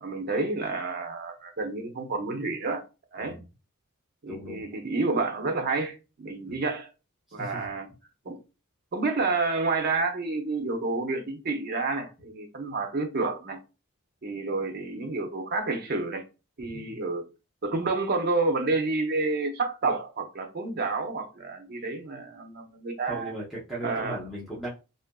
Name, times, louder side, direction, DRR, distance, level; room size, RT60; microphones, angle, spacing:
voice 1, 0.0-2.8 3.1-3.4 4.2-6.9 7.3-7.9 8.3-8.4 8.9-13.6 14.2-16.2 16.6-17.2 17.6-23.3 23.8-24.2, right 3 dB, 50° right, 0.5 m, -29 dB
voice 2, 4.3-4.6 6.4-6.5 7.4-7.7 16.6-17.0 23.1-24.7, right 1 dB, ahead, 0.6 m, -37 dB
2.7 x 2.4 x 2.2 m
head